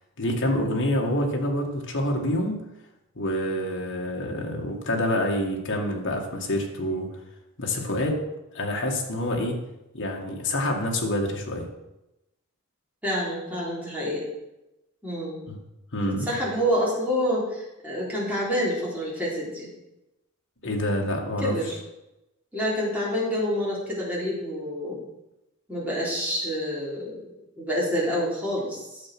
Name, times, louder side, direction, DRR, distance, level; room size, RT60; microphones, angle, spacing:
voice 1, 0.2-2.5 3.2-7.1 7.6-8.2 8.5-9.6 9.9-11.7 15.5-15.6 15.9-16.3 20.6-21.6, left 1 dB, 55° left, 1 dB, 2.1 m, -27 dB
voice 2, 13.0-14.3 15.0-15.4 16.0-19.7 21.4-21.8 22.5-25.0 25.7-29.0, equal, 5° right, -6 dB, 3.9 m, -28 dB
11.0 x 7.4 x 6.2 m, 0.93 s
head